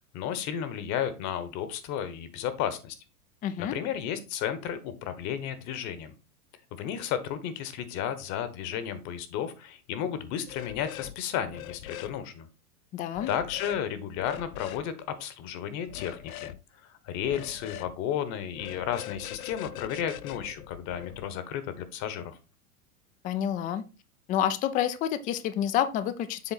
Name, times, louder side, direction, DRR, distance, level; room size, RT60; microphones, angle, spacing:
voice 1, 0.0-3.0 3.6-6.1 6.8-12.5 13.3-16.5 17.0-22.4, left 9 dB, 40° left, 12 dB, 1.1 m, -33 dB
voice 2, 3.4-3.7 12.9-13.3 23.2-23.8 24.3-26.5, left 10 dB, 20° left, 12 dB, 0.4 m, -28 dB
sound 1, 10.5-11.2 11.4-12.2 13.2-13.8 14.2-14.8 15.9-16.6 17.2-17.9 18.5-21.2, left 14 dB, 70° left, 0.6 m, -42 dB
7.2 x 3.7 x 4.1 m, 0.31 s
hypercardioid pair, 95°, 44 cm